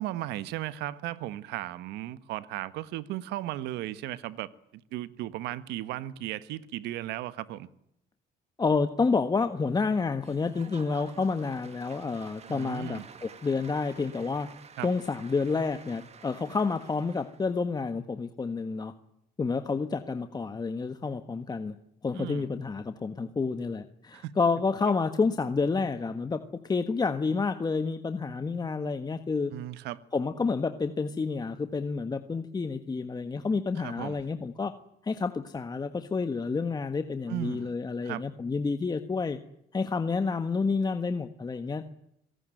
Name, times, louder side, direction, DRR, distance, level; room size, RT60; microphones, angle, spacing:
voice 1, 0.0-7.7 12.5-13.0 14.8-14.9 22.2-22.5 24.1-24.4 24.8-24.9 29.5-30.0 33.8-34.2 37.3-37.7 38.0-38.2, right 14 dB, 90° right, 1.5 m, -36 dB
voice 2, 8.6-14.5 14.8-18.9 19.4-21.8 22.0-26.4 26.7-29.5 30.1-34.7 35.0-39.4 39.7-41.9, left 4 dB, 25° left, 1.5 m, -29 dB
Applause / Crowd, 10.2-17.5, right 6 dB, 40° right, 2.9 m, -51 dB
26.5 x 18.0 x 9.1 m
cardioid pair, 110°, 17 cm